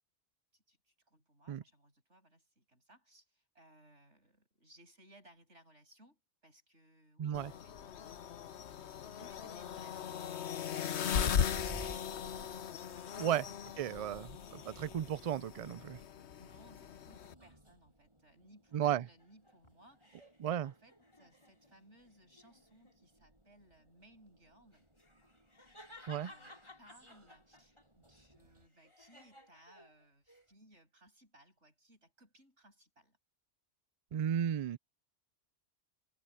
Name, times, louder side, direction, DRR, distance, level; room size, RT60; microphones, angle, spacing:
voice 1, 0.5-12.0 12.8-13.3 13.9-15.0 16.2-24.9 25.7-33.2, right 1 dB, 85° right, 7.3 m, -64 dB
voice 2, 7.2-7.5 13.2-13.4 13.8-16.0 18.7-19.0 20.4-20.7 26.1-26.3 34.1-34.8, right 10 dB, 65° right, 0.3 m, -34 dB
sound 1, 7.3-17.3, left 8 dB, 75° left, 1.1 m, -38 dB
sound 2, 11.0-28.7, right 1 dB, 25° right, 8.3 m, -58 dB
sound 3, 18.7-21.8 22.3-23.0 24.7-27.8 28.2-30.5, left 1 dB, 25° left, 3.4 m, -58 dB
omnidirectional pair, 1.2 m